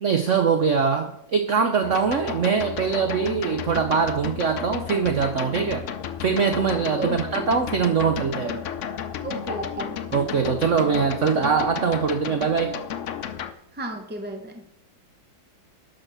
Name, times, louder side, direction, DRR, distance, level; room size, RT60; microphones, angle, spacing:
voice 1, 0.0-5.8 6.2-8.5 10.1-12.7, right 6 dB, 65° right, 6 dB, 0.7 m, -22 dB
sound 1, 1.8-13.5, left 9 dB, 85° left, 0.6 m, -33 dB
voice 2, 9.2-10.0 13.7-14.6, right 2 dB, 10° right, 5 dB, 0.7 m, -33 dB
12.0 x 5.0 x 6.1 m, 0.78 s
omnidirectional pair, 2.1 m